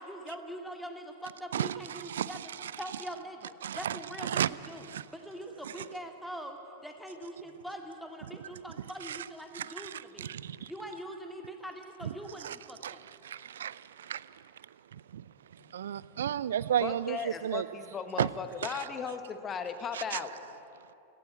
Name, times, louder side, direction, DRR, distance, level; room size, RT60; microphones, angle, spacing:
voice 1, 0.0-10.3 10.7-13.0, right 1 dB, ahead, 2.1 m, -43 dB
voice 2, 1.5-2.7 3.6-4.0 4.2-4.5 4.9-5.0 9.1-9.2 9.5-10.7 12.4-12.6 12.8-13.0 13.2-14.4 14.9-15.2 15.7-17.7 18.2-18.3 18.6-18.9 19.9-20.2, right 10 dB, 65° right, 0.5 m, -33 dB
voice 3, 16.8-20.3, left 6 dB, 25° left, 1.3 m, -37 dB
18.0 x 16.0 x 9.1 m
figure-of-eight pair, 90°, 0 cm